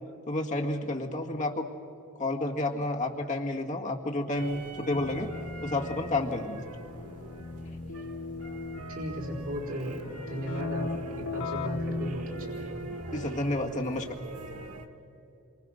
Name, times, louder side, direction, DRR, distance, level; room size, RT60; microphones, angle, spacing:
voice 1, 0.3-1.7 2.2-5.3 5.6-6.6 13.1-14.2, left 2 dB, 35° left, 0 dB, 1.9 m, -30 dB
sound 1, 4.3-14.9, right 2 dB, 85° right, 1.5 m, -43 dB
Keyboard (musical), 4.9-13.3, left 3 dB, 85° left, 0.9 m, -38 dB
voice 2, 8.9-10.9 11.1-12.6, right 1 dB, 60° right, -3 dB, 4.2 m, -36 dB
27.0 x 24.0 x 6.4 m, 2.8 s
head